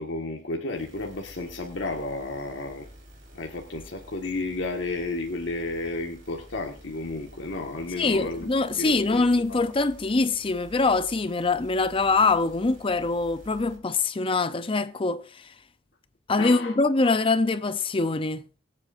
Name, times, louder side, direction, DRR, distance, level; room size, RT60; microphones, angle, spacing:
voice 1, 0.0-2.9 3.3-9.2 9.5-9.7 16.4-16.7, left 2 dB, 65° left, 1.5 m, -32 dB
sound 1, 0.7-13.8, equal, 45° right, 3.8 m, -50 dB
voice 2, 8.0-15.5 16.3-18.4, left 3 dB, 30° left, 0.5 m, -24 dB
24.5 x 8.3 x 2.5 m
head